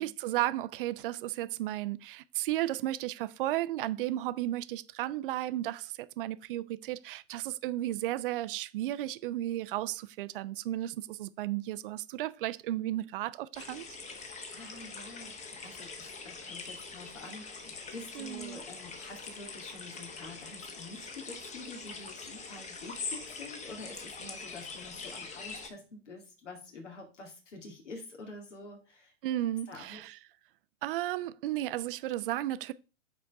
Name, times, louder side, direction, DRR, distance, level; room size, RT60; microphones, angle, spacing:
voice 1, 0.0-13.9 18.2-18.6 29.2-30.2 30.8-32.7, right 14 dB, 45° right, 0.6 m, -34 dB
sound 1, 13.5-25.7, left 4 dB, 20° left, 1.2 m, -43 dB
voice 2, 14.1-29.1 29.7-30.0, left 2 dB, 70° left, 2.4 m, -47 dB
6.0 x 4.5 x 5.3 m
figure-of-eight pair, 110°, 37 cm